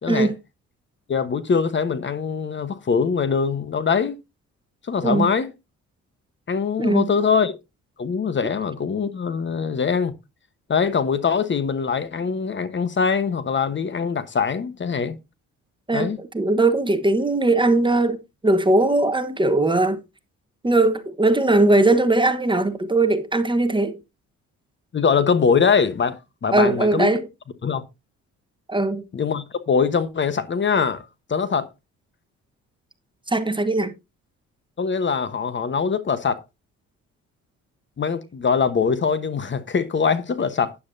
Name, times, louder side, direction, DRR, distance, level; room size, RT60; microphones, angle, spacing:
voice 1, 0.0-0.3 1.1-4.2 4.9-5.5 6.5-7.5 8.0-10.1 10.7-15.2 15.9-16.2 24.9-27.1 27.6-27.8 29.1-31.7 34.8-36.4 38.0-40.8, left 6 dB, 40° left, 1.1 m, -22 dB
voice 2, 15.9-18.2 18.4-20.0 20.6-24.0 26.5-27.3 28.7-29.0 33.3-33.9, right 2 dB, 15° right, 1.2 m, -19 dB
12.0 x 9.6 x 2.7 m
cardioid pair, 90°, 30 cm